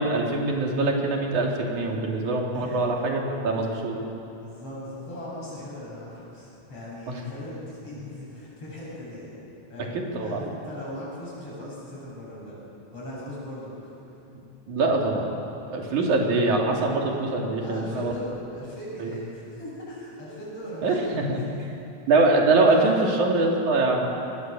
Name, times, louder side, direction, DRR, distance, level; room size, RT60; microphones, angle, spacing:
voice 1, 0.0-4.0 7.1-7.2 9.9-10.4 14.3-14.4 14.7-15.3 15.7-18.2 19.0-19.1 20.8-21.4 22.1-24.1, right 2 dB, 85° right, 0 dB, 4.2 m, -23 dB
voice 2, 2.5-3.0 4.3-9.3 9.7-12.6 12.9-14.0 16.0-16.2 17.6-21.4 22.5-23.1, left 1 dB, 50° left, -6 dB, 9.2 m, -39 dB
24.0 x 20.0 x 7.7 m, 2.9 s
omnidirectional pair, 3.4 m